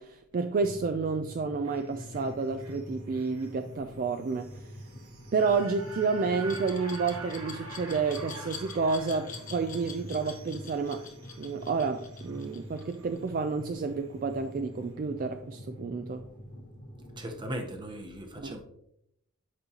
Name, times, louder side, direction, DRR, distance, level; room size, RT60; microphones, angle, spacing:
voice 1, 0.0-4.7 5.3-11.0 11.4-16.2 18.4-18.6, right 4 dB, 40° right, 8 dB, 0.3 m, -30 dB
sound 1, 0.6-17.5, equal, 60° left, 2.0 m, -45 dB
sound 2, 1.6-14.0 14.3-14.4, right 3 dB, 90° right, 1.5 m, -48 dB
Glass, 6.5-13.3, left 7 dB, 40° left, 0.9 m, -45 dB
voice 2, 17.1-18.6, right 1 dB, 20° right, 4 dB, 0.9 m, -38 dB
8.0 x 5.5 x 2.8 m, 0.76 s
head